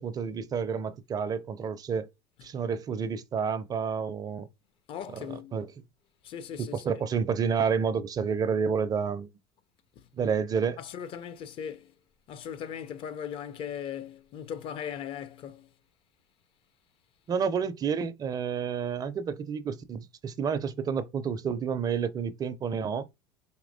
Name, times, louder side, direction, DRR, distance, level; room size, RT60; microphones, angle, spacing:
voice 1, 0.0-2.1 2.4-4.5 5.5-5.7 6.6-9.3 10.2-10.8 17.3-23.1, right 6 dB, 30° right, 0.4 m, -29 dB
voice 2, 4.9-5.6 6.2-6.8 10.8-11.9 12.3-15.7, left 8 dB, 45° left, 0.6 m, -38 dB
4.2 x 2.9 x 2.6 m
supercardioid pair, 95°, 12 cm